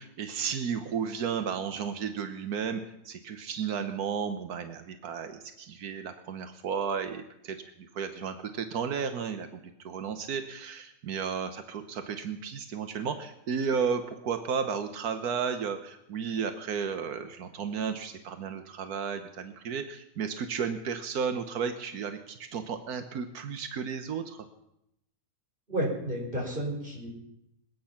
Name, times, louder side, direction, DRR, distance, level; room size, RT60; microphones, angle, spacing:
voice 1, 0.0-9.6 9.8-24.4, right 6 dB, 90° right, 8 dB, 1.5 m, -33 dB
voice 2, 25.7-27.1, right 1 dB, 35° right, -1 dB, 5.4 m, -31 dB
26.5 x 9.3 x 5.8 m, 0.82 s
omnidirectional pair, 1.6 m